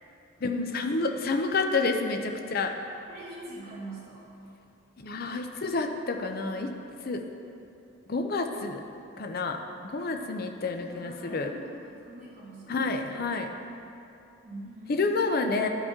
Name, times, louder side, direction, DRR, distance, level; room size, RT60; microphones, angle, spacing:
voice 1, 0.4-2.7 5.0-6.7 7.0-7.2 8.1-8.8 9.2-11.5 12.7-13.5 14.9-15.7, left 3 dB, 45° left, 4 dB, 0.5 m, -29 dB
voice 2, 3.1-4.3 6.0-6.4 7.1-7.4 10.0-10.2 10.5-13.2 14.4-15.4, right 1 dB, 30° right, -12 dB, 1.8 m, -45 dB
11.5 x 5.2 x 3.6 m, 2.7 s
head